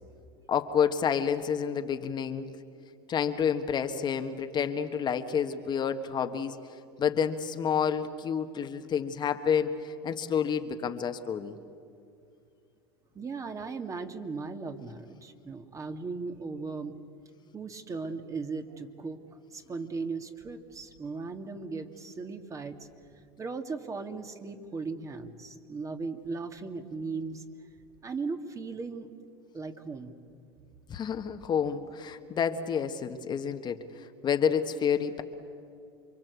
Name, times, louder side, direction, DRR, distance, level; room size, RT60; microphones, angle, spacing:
voice 1, 0.5-2.5 3.1-6.6 7.0-11.6 30.9-35.2, left 7 dB, 35° left, 7 dB, 1.5 m, -29 dB
voice 2, 13.1-17.0 17.5-22.9 23.4-27.4 28.0-29.1 29.5-30.2, right 4 dB, 25° right, 6 dB, 2.1 m, -37 dB
28.0 x 24.0 x 8.3 m, 2.4 s
hypercardioid pair, 100°, 13 cm